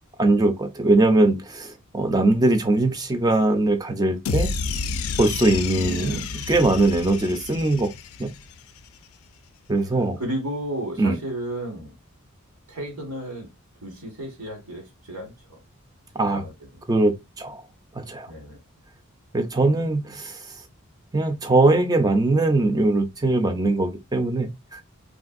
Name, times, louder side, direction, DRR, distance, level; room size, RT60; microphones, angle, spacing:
voice 1, 0.2-4.5 5.2-6.2 6.5-7.9 8.2-8.3 9.7-10.2 11.0-11.2 16.1-16.4 16.9-17.6 17.9-18.3 19.3-20.6 21.1-24.8, right 2 dB, 15° right, 0.4 m, -21 dB
sound 1, 4.3-8.6, left 4 dB, 75° left, 0.4 m, -30 dB
voice 2, 5.7-6.2 10.2-11.9 12.7-13.5 13.8-15.6 16.3-16.8 18.3-18.6, right 1 dB, 85° right, 1.4 m, -33 dB
3.3 x 2.5 x 2.4 m
head